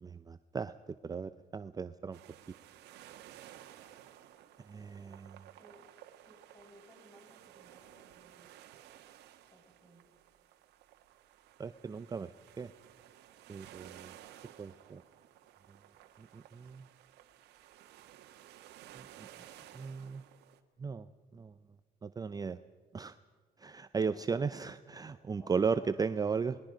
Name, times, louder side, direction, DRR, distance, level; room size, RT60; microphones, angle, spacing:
voice 1, 0.0-0.7 1.0-2.2 4.7-5.4 11.6-12.3 12.6-12.7 13.5-14.2 14.6-15.0 16.2-16.9 18.9-19.3 19.7-20.2 20.8-21.5 22.0-22.6 22.9-23.2 23.6-26.6, right 5 dB, 20° right, 12 dB, 0.5 m, -36 dB
sound 1, 2.1-20.6, right 12 dB, 80° right, 1.4 m, -56 dB
voice 2, 5.6-5.9 6.2-8.6 9.5-10.1 24.0-24.5 25.1-26.4, equal, 25° left, 1 dB, 7.0 m, -59 dB
27.5 x 20.5 x 5.1 m, 1.5 s
cardioid pair, 110°, 17 cm